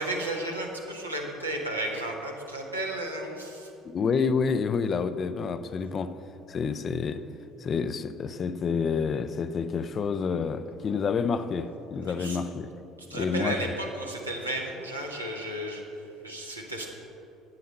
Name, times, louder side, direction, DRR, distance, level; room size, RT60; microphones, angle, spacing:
voice 1, 0.0-3.7 12.0-12.4 13.0-16.9, right 1 dB, 85° right, 1.2 m, -33 dB
voice 2, 3.8-6.2 6.5-7.3 7.6-12.7 13.1-13.6, left 5 dB, 35° left, 0.5 m, -28 dB
10.5 x 8.6 x 5.5 m
figure-of-eight pair, 60°, 0 cm